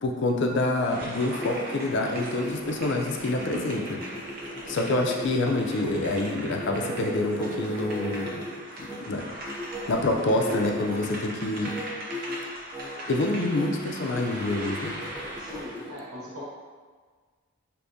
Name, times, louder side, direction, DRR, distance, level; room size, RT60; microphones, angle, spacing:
voice 1, 0.0-4.0 4.6-8.4 9.0-9.6 9.9-11.8 13.1-15.0, left 2 dB, 55° left, 2 dB, 0.4 m, -27 dB
sound 1, 0.8-15.9, right 1 dB, 45° right, 0.5 m, -40 dB
sound 2, 1.1-9.0 9.4-11.1 11.5-11.8 12.1-12.4 12.7-13.7 14.1-15.9, left 1 dB, 5° left, 0.5 m, -37 dB
voice 2, 15.4-16.4, left 1 dB, 85° right, -5 dB, 0.9 m, -41 dB
3.4 x 2.6 x 2.6 m, 1.5 s
head